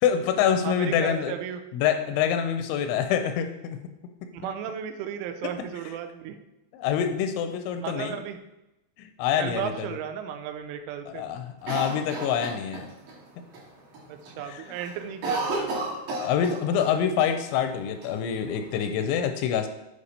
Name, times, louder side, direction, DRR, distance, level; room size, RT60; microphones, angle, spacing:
voice 1, 0.0-1.3 1.7-3.8 4.2-4.3 6.7-8.2 9.0-9.9 11.1-12.9 14.5-14.6 16.2-19.7, left 8 dB, 85° left, 7 dB, 2.8 m, -26 dB
voice 2, 0.6-1.7 2.9-3.0 4.3-6.4 7.7-8.4 9.4-11.3 14.1-15.9, right 9 dB, 90° right, 8 dB, 3.2 m, -35 dB
Cough, 11.7-13.2 13.5-13.6 13.9-14.4 14.6-16.9 17.2-17.3 18.0-18.8, right 2 dB, 55° right, 3.4 m, -32 dB
8.2 x 5.3 x 4.2 m, 0.93 s
omnidirectional pair, 5.5 m